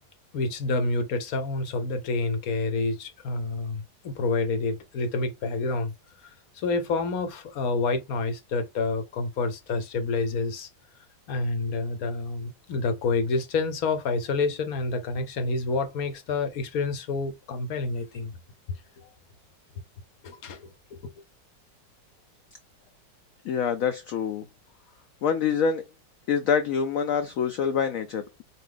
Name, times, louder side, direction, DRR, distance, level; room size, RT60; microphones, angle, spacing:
voice 1, 0.3-5.9 6.2-10.7 11.3-18.3 19.0-19.1 20.2-21.1, left 3 dB, 60° left, 1.1 m, -28 dB
voice 2, 23.5-24.4 25.2-25.8 26.3-28.4, left 6 dB, 80° left, 0.7 m, -26 dB
4.0 x 2.7 x 3.7 m
omnidirectional pair, 2.0 m